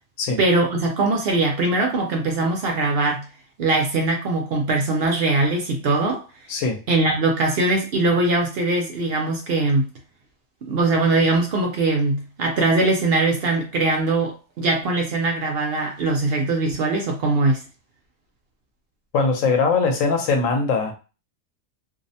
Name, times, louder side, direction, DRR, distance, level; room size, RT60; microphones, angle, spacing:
voice 1, 0.4-3.2 3.6-6.2 6.9-9.9 10.6-17.6, right 2 dB, 60° right, 2 dB, 0.7 m, -21 dB
voice 2, 6.5-6.8 19.1-20.9, left 4 dB, 85° left, 3 dB, 1.0 m, -21 dB
2.5 x 2.0 x 2.7 m, 0.32 s
omnidirectional pair, 1.3 m